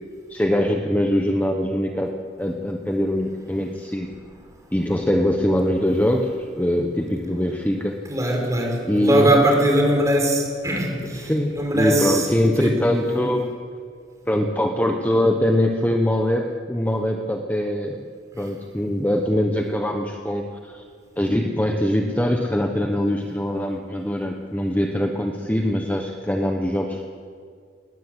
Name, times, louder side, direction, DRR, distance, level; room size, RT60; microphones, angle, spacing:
voice 1, 0.3-2.1 2.4-4.1 4.7-8.0 8.8-9.3 11.2-13.5 14.3-18.0 18.4-20.8 21.2-27.1, left 1 dB, 10° left, 3 dB, 1.1 m, -22 dB
voice 2, 8.1-12.3 12.6-12.7, right 1 dB, 20° right, 0 dB, 5.0 m, -20 dB
20.0 x 20.0 x 8.1 m, 2.1 s
head